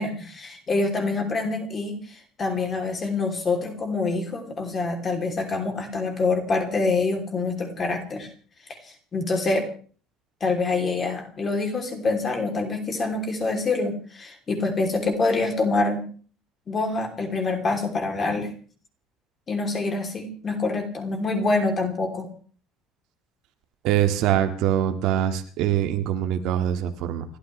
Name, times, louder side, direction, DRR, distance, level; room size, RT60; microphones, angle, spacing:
voice 1, 0.0-8.3 9.1-9.7 10.4-16.0 16.7-18.5 19.5-22.3, left 3 dB, 20° left, 4 dB, 3.1 m, -26 dB
voice 2, 23.8-27.2, right 11 dB, 60° right, 7 dB, 1.8 m, -23 dB
29.5 x 13.0 x 3.3 m, 0.41 s
cardioid pair, 180°, 0 cm